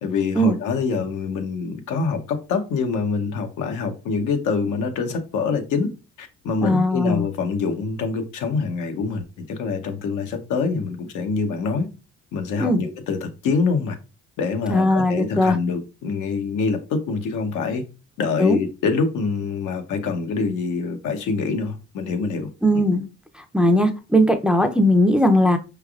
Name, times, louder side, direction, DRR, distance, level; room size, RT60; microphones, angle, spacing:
voice 1, 0.0-5.9 6.2-11.9 12.3-14.0 14.4-17.8 18.2-22.8, left 4 dB, 85° left, 0.8 m, -25 dB
voice 2, 6.6-7.3 12.6-12.8 14.7-15.5 18.4-18.6 22.6-23.0 23.5-25.6, equal, 5° right, 0.4 m, -18 dB
4.9 x 3.3 x 2.3 m
cardioid pair, 90°, 30 cm